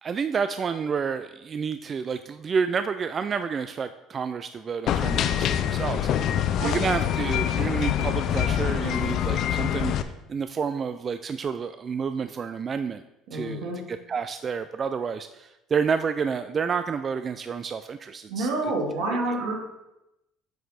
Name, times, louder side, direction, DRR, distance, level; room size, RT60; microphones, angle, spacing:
voice 1, 0.0-13.0 13.3-18.7 19.3-19.4, right 6 dB, 35° right, 10 dB, 0.3 m, -30 dB
sound 1, 4.9-10.0, left 10 dB, 60° left, 0.5 m, -25 dB
voice 2, 6.5-7.0 13.3-13.8 18.3-19.5, right 2 dB, 80° right, 0 dB, 2.1 m, -28 dB
7.8 x 5.0 x 4.2 m, 0.91 s
cardioid pair, 110°, 0 cm